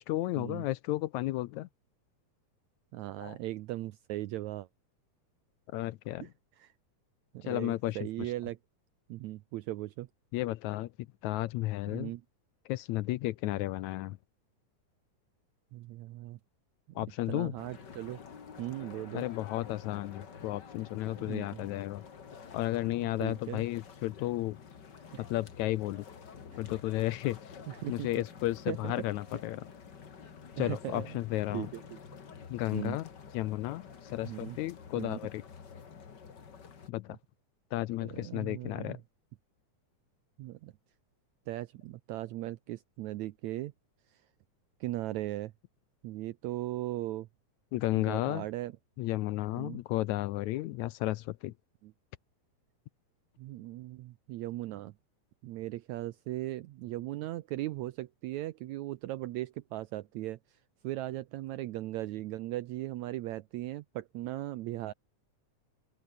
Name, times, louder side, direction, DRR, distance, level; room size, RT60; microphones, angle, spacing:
voice 1, 0.0-1.7 3.2-3.4 5.7-6.3 7.4-8.3 10.3-10.9 11.2-12.1 12.7-14.2 17.0-17.5 19.1-22.0 22.5-24.6 25.2-26.1 26.6-27.6 27.9-29.7 30.6-31.7 32.5-33.1 33.3-35.4 36.9-37.2 37.7-39.0 47.7-48.5 49.0-51.5, left 16 dB, 80° left, 1.9 m, -33 dB
voice 2, 2.9-4.7 6.2-6.3 6.6-6.7 7.3-8.6 9.1-10.1 11.9-12.2 15.7-16.4 17.3-18.2 18.6-19.2 21.2-21.7 23.0-23.6 25.1-25.2 27.7-28.1 28.7-28.9 30.6-31.2 31.5-32.0 32.7-33.0 34.2-34.6 35.0-35.2 38.0-39.0 40.4-40.7 41.5-43.7 44.8-45.5 46.0-47.3 48.0-48.7 49.5-49.8 51.8-51.9 53.4-54.9 55.4-60.4 60.8-64.9, right 16 dB, 75° right, 1.9 m, -38 dB
sound 1, 17.6-36.9, left 6 dB, 40° left, 2.2 m, -50 dB
open air
omnidirectional pair, 3.6 m